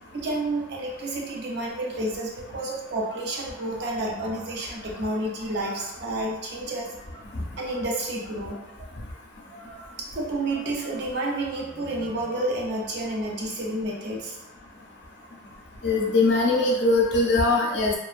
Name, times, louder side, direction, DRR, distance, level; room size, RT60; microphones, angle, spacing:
voice 1, 0.1-6.9 7.6-8.9 9.5-9.8 10.1-14.3, right 1 dB, 60° right, -1 dB, 0.5 m, -30 dB
voice 2, 15.8-17.9, left 3 dB, 65° left, -2 dB, 0.5 m, -21 dB
2.5 x 2.1 x 2.4 m, 0.94 s
head